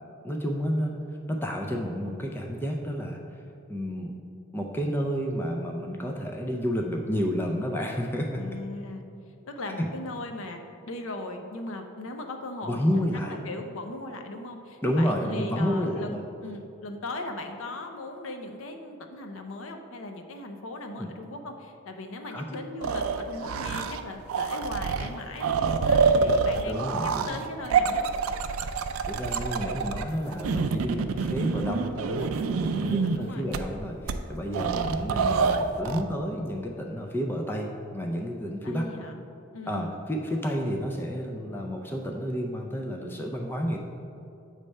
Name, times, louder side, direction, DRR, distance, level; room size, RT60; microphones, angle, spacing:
voice 1, 0.2-3.2 3.7-4.2 4.5-8.4 9.8-9.9 12.7-13.4 14.8-16.2 21.0-21.1 22.3-22.5 26.7-27.3 29.1-32.3 32.7-38.9 39.7-43.8, equal, 10° left, 1 dB, 0.4 m, -30 dB
voice 2, 8.3-9.0 9.5-10.6 10.9-12.9 13.1-28.0 32.7-33.5 38.6-39.2 39.5-39.9, left 2 dB, 70° left, 5 dB, 0.6 m, -38 dB
sound 1, 22.8-24.0 24.3-33.2 33.5-33.6 34.1-34.2 34.5-36.0, right 5 dB, 85° right, 0.4 m, -26 dB
7.4 x 3.3 x 5.3 m, 2.6 s
head